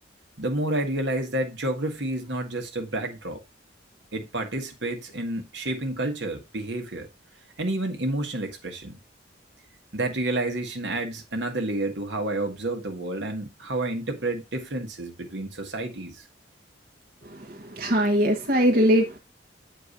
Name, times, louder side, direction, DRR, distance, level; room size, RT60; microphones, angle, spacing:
voice 1, 0.4-3.4 4.1-7.1 7.6-9.0 9.9-16.2, right 1 dB, 65° right, 1.6 m, -30 dB
voice 2, 17.5-19.2, equal, 50° right, 1.4 m, -21 dB
8.3 x 4.5 x 4.0 m
head